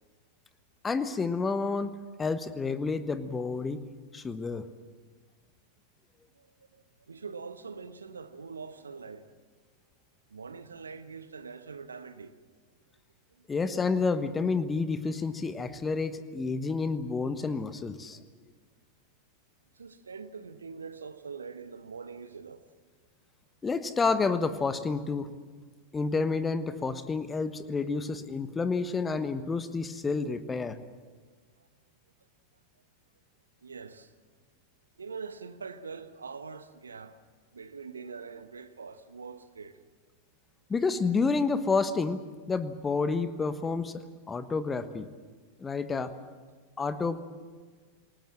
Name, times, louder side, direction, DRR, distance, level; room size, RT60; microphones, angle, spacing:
voice 1, 0.8-1.9 2.2-3.8 4.1-4.7 13.5-18.2 23.6-25.3 25.9-30.8 40.7-42.2 42.5-45.1 45.6-46.1 46.8-47.2, left 4 dB, 15° left, 1.3 m, -29 dB
voice 2, 6.3-9.3 10.3-12.3 13.4-13.5 19.7-22.6 33.6-34.1 35.0-37.2 37.5-39.8 46.8-46.9, right 5 dB, 75° right, 1.3 m, -43 dB
27.5 x 18.5 x 7.5 m
figure-of-eight pair, 90°, 0 cm